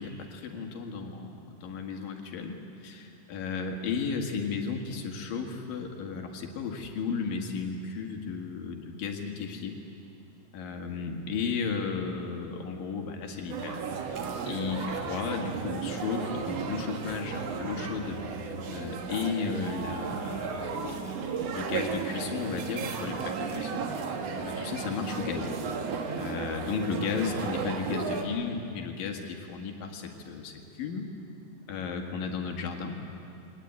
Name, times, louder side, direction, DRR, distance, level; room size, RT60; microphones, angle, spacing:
voice 1, 0.0-9.8 10.5-18.2 18.6-21.1 21.5-23.9 24.4-25.5 26.2-31.1 31.7-33.0, left 5 dB, 85° left, 3 dB, 3.7 m, -34 dB
sound 1, 13.5-28.2, right 5 dB, 55° right, 2.2 m, -34 dB
24.0 x 18.5 x 9.5 m, 2.8 s
omnidirectional pair, 3.9 m